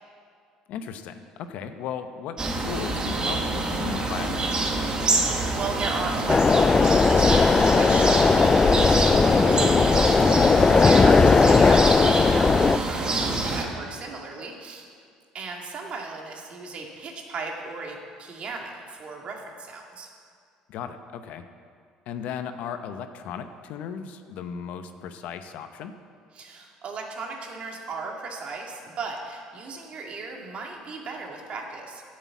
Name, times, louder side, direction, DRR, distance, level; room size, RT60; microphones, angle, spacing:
voice 1, 0.7-4.5 10.6-10.9 20.7-21.4 22.1-25.9, left 7 dB, 65° left, 9 dB, 0.8 m, -36 dB
sound 1, 2.4-13.6, right 2 dB, 30° right, 1.9 m, -26 dB
voice 2, 5.1-10.5 10.8-14.9 15.3-20.1 26.3-32.0, right 4 dB, 50° right, 1 dB, 2.3 m, -36 dB
sound 2, 6.3-12.8, left 4 dB, 25° left, 0.4 m, -18 dB
10.0 x 7.6 x 8.4 m, 2.1 s
supercardioid pair, 75°, 3 cm